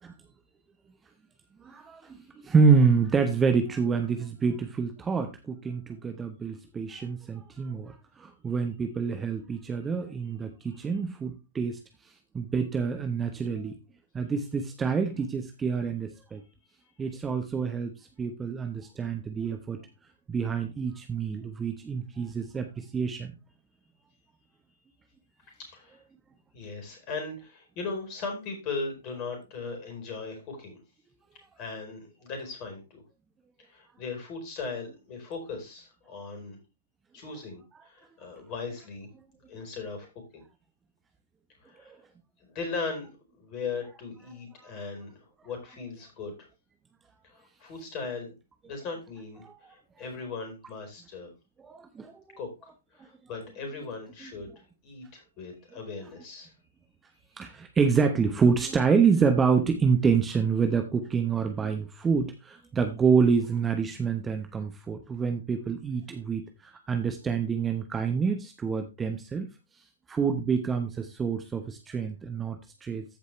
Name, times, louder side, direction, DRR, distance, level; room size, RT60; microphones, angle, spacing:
voice 1, 1.6-2.2 2.4-11.8 12.3-13.7 14.1-16.4 17.0-17.9 18.2-19.8 20.3-23.3 49.4-49.5 51.6-52.4 54.2-54.3 57.4-69.5 70.1-73.0, right 5 dB, 15° right, 6 dB, 1.0 m, -27 dB
voice 2, 25.5-26.0 26.5-30.8 31.6-33.0 33.6-36.6 37.1-39.1 39.5-40.1 40.3-40.4 41.6-41.9 42.4-43.1 43.4-46.5 47.2-48.4 48.6-51.3 52.4-52.5 52.9-56.5 57.3-57.4, left 4 dB, 30° left, 4 dB, 4.4 m, -38 dB
14.0 x 5.3 x 3.3 m, 0.26 s
figure-of-eight pair, 120°, 0 cm